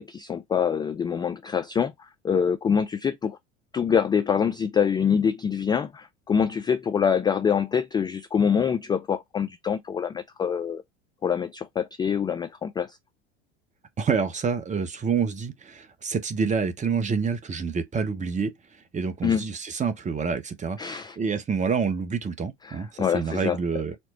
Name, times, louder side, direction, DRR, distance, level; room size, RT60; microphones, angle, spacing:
voice 1, 0.0-1.9 2.2-3.4 3.7-10.8 11.2-13.0 19.2-19.4 20.8-21.2 22.6-23.6, left 7 dB, 15° left, 0.3 m, -25 dB
voice 2, 14.0-18.5 18.9-24.0, right 5 dB, 20° right, 0.8 m, -27 dB
4.4 x 2.1 x 4.1 m
hypercardioid pair, 75°, 35 cm